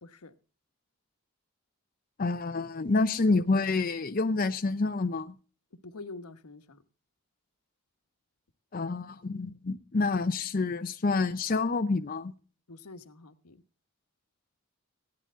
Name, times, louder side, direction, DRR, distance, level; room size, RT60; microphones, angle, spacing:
voice 1, 0.0-0.3 5.8-6.8 12.7-13.6, left 3 dB, 90° left, 1.1 m, -46 dB
voice 2, 2.2-5.4 8.7-12.3, left 3 dB, 40° left, 0.5 m, -28 dB
15.0 x 10.5 x 3.6 m
head